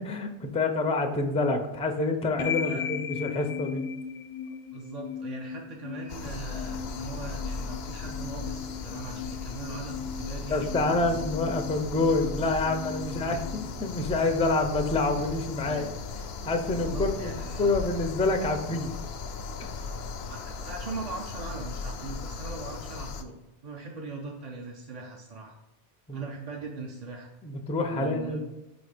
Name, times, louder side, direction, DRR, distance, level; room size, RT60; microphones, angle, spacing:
voice 1, 0.0-3.8 10.5-15.8 16.4-17.3 17.6-18.9 19.6-19.8 26.1-26.3 27.4-28.4, left 2 dB, 10° left, 4 dB, 0.4 m, -27 dB
sound 1, 2.4-14.4, left 7 dB, 50° left, 0.6 m, -38 dB
voice 2, 4.7-11.3 13.0-13.4 15.6-15.9 16.7-17.8 20.3-25.6 26.1-27.3 27.9-28.4, right 3 dB, 45° right, 0 dB, 0.7 m, -40 dB
sound 2, 6.1-23.2, left 4 dB, 80° left, 0.8 m, -37 dB
5.0 x 4.1 x 4.9 m, 1.0 s
omnidirectional pair, 1.0 m